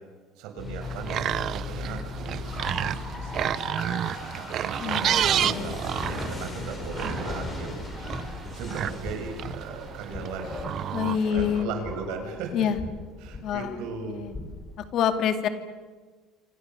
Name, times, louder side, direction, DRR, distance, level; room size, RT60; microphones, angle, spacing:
voice 1, 0.4-7.8 8.5-10.7 11.3-12.7 13.2-14.2, right 5 dB, 75° right, 5 dB, 6.7 m, -38 dB
sound 1, 0.6-14.8, left 3 dB, 25° left, 7.2 m, -37 dB
sound 2, 0.8-11.6, right 11 dB, 50° right, 0.8 m, -31 dB
voice 2, 4.8-5.7 10.9-11.7 12.5-12.8 13.4-13.8 14.1-14.3 14.8-15.5, left 8 dB, 55° left, 8 dB, 2.6 m, -27 dB
27.5 x 26.0 x 7.1 m, 1.4 s
supercardioid pair, 100°, 0 cm